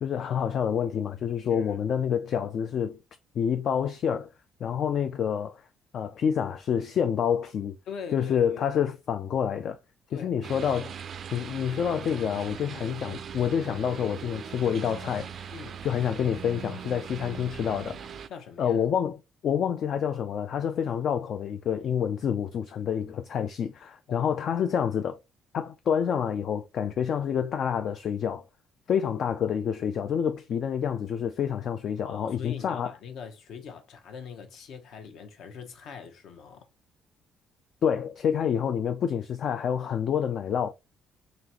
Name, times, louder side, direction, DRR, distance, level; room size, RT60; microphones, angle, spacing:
voice 1, 0.0-3.0 3.4-4.3 4.6-5.6 5.9-7.8 8.1-9.8 10.1-10.9 11.3-15.5 15.8-18.2 18.6-25.2 25.5-28.4 28.9-32.9 37.8-40.7, left 8 dB, 50° left, 0.3 m, -28 dB
voice 2, 7.9-8.6 10.1-10.3 15.5-15.8 18.3-18.8 24.1-24.3 32.0-36.7, left 6 dB, 65° left, 0.8 m, -42 dB
sound 1, 10.4-18.3, right 8 dB, 40° right, 0.3 m, -40 dB
3.9 x 3.2 x 2.9 m
cardioid pair, 155°, 0 cm